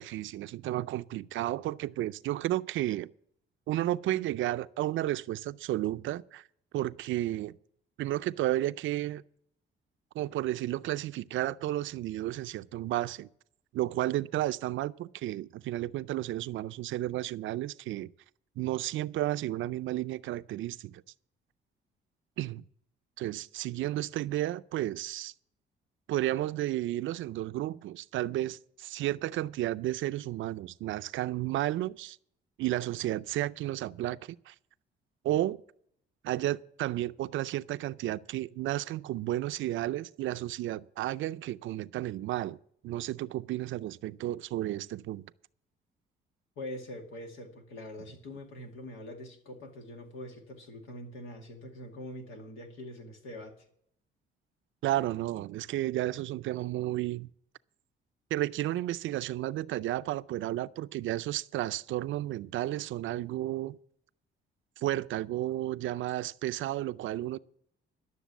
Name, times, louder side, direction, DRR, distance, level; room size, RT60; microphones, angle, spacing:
voice 1, 0.0-3.1 3.7-6.4 6.7-7.5 8.0-9.2 10.1-13.3 13.7-18.1 18.6-21.0 22.4-22.6 23.2-25.3 26.1-32.2 32.6-34.5 35.2-35.6 36.2-42.6 42.8-45.3 54.8-57.3 58.3-63.8 64.8-67.4, right 14 dB, 75° right, 0.5 m, -32 dB
voice 2, 46.6-53.7, left 1 dB, 85° left, 2.3 m, -44 dB
12.5 x 6.8 x 8.3 m
cardioid pair, 90°, 20 cm